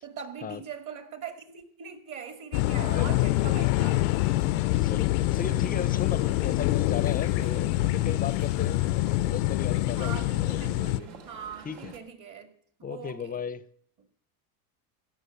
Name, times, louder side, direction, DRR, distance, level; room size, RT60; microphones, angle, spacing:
voice 1, 0.0-4.0 10.0-12.5 12.8-13.4, right 7 dB, 40° right, 2.1 m, -41 dB
sound 1, 2.5-11.0, left 17 dB, 80° left, 0.6 m, -25 dB
sound 2, 2.8-12.0, right 5 dB, 70° right, 2.4 m, -49 dB
voice 2, 4.8-8.9 9.3-11.1 11.6-11.9 12.8-13.7, left 7 dB, 20° left, 0.6 m, -36 dB
16.0 x 6.3 x 6.8 m
supercardioid pair, 105°, 45 cm